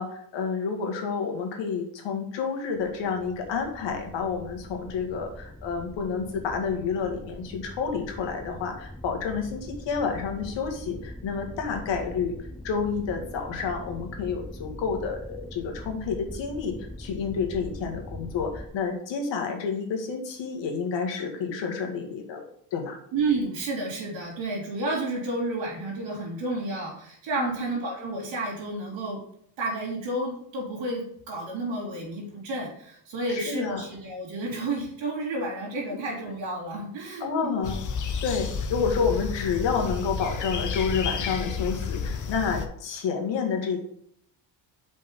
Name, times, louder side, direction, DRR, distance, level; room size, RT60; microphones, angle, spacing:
voice 1, 0.0-12.4 12.6-22.4 22.7-23.0 27.4-27.7 33.3-33.9 37.2-37.8 38.2-43.8, left 5 dB, 70° left, 3 dB, 1.9 m, -29 dB
sound 1, 2.7-18.7, left 1 dB, 5° left, 0.3 m, -42 dB
voice 2, 23.1-29.2 29.6-37.6, right 2 dB, 80° right, -3 dB, 3.1 m, -31 dB
sound 2, 37.6-42.7, left 5 dB, 40° left, 0.9 m, -31 dB
5.4 x 5.2 x 5.3 m, 0.69 s
cardioid pair, 120°, 45 cm